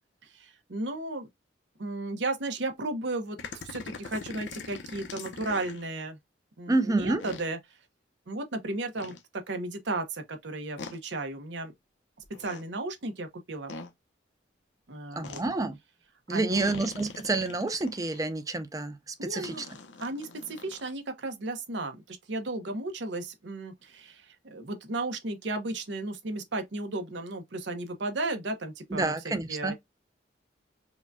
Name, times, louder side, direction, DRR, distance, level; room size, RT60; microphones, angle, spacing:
voice 1, 0.2-1.3 1.8-3.4 3.6-6.2 6.6-7.6 8.3-9.2 9.5-11.7 12.4-13.7 14.9-15.4 16.3-16.7 19.2-19.6 20.0-29.7, right 2 dB, 70° right, 0.8 m, -34 dB
sound 1, 3.4-5.9 7.2-7.5 9.0-9.2 10.8-11.0 12.2-12.6 13.7-13.9 15.2-15.4 16.5-18.2 19.4-20.9, left 4 dB, 75° left, 0.7 m, -42 dB
voice 2, 6.7-7.2 15.2-15.8 16.3-19.5 28.9-29.7, right 3 dB, 20° right, 0.5 m, -29 dB
5.0 x 2.2 x 2.6 m
head